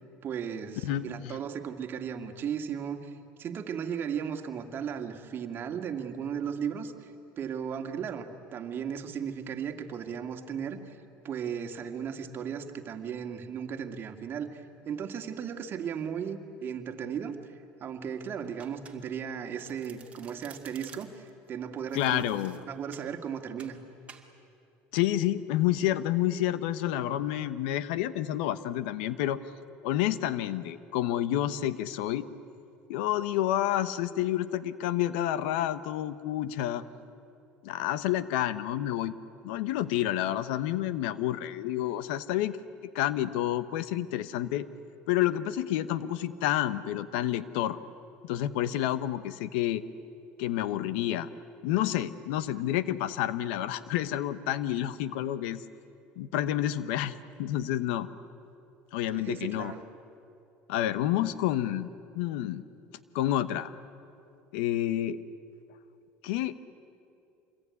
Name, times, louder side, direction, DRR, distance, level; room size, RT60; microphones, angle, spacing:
voice 1, 0.2-11.0 11.2-22.2 22.6-23.8 59.1-59.8, right 7 dB, 40° right, 5 dB, 2.1 m, -36 dB
voice 2, 0.8-1.4 21.9-22.6 24.9-29.4 29.8-32.3 32.9-36.8 37.6-39.1 39.4-42.6 42.9-44.7 45.1-47.8 48.2-49.8 50.4-51.3 51.6-55.6 56.2-58.1 58.9-59.7 60.7-61.9 62.1-62.6 63.1-63.7 64.5-65.2 66.2-66.5, left 13 dB, 85° left, 15 dB, 1.0 m, -29 dB
Domestic sounds home sounds, 18.6-19.3 19.6-21.3 21.9-23.1 23.6-23.8 24.1-24.3, right 6 dB, 20° right, 2.4 m, -52 dB
26.5 x 21.5 x 9.7 m, 2.6 s
supercardioid pair, 115°, 5 cm